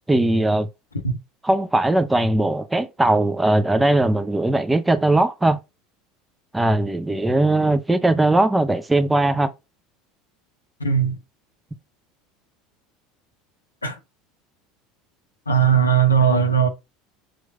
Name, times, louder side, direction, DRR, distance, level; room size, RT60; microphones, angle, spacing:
voice 1, 0.1-0.7 1.4-5.6 6.5-9.5, right 2 dB, 10° right, 0.6 m, -19 dB
voice 2, 10.8-11.2 13.8-14.0 15.5-16.7, right 7 dB, 85° left, 0.6 m, -18 dB
6.4 x 3.1 x 2.4 m
figure-of-eight pair, 70°, 0 cm